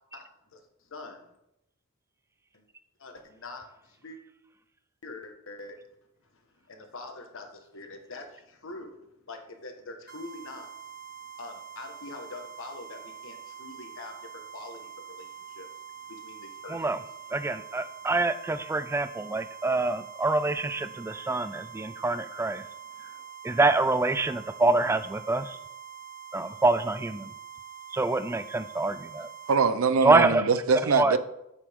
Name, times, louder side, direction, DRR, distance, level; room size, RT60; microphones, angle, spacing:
voice 1, 0.9-1.3 2.5-2.6 3.0-4.2 5.0-5.8 6.3-10.7 11.4-15.7 16.1-16.8, left 2 dB, 65° left, 1.4 m, -44 dB
sound 1, 10.1-29.6, right 8 dB, 45° right, 1.7 m, -45 dB
voice 2, 17.3-22.7 23.4-25.6 26.3-27.3 27.9-29.3 30.0-30.4 30.9-31.2, right 2 dB, 10° right, 0.3 m, -26 dB
voice 3, 29.5-31.2, right 5 dB, 65° right, 0.6 m, -23 dB
8.4 x 8.4 x 3.6 m
head